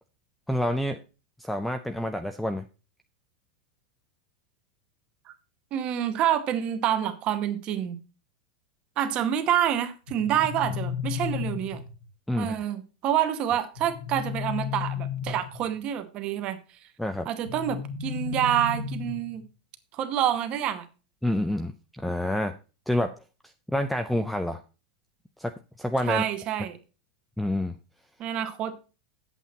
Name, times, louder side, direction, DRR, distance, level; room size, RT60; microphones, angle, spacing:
voice 1, 0.5-1.0 1.4-2.7 12.3-12.6 17.0-17.3 21.2-22.5 22.9-23.1 23.7-24.6 25.4-26.2 27.4-27.8, left 1 dB, ahead, 8 dB, 0.4 m, -28 dB
voice 2, 5.7-8.0 9.0-11.8 12.4-16.6 17.2-19.4 19.9-20.9 26.1-26.8 28.2-28.8, right 10 dB, 25° right, 10 dB, 1.0 m, -27 dB
sound 1, 10.1-12.1 13.8-15.8 17.5-19.5, left 7 dB, 85° left, 2.0 m, -34 dB
9.0 x 8.2 x 4.2 m, 0.33 s
supercardioid pair, 180°, 4 cm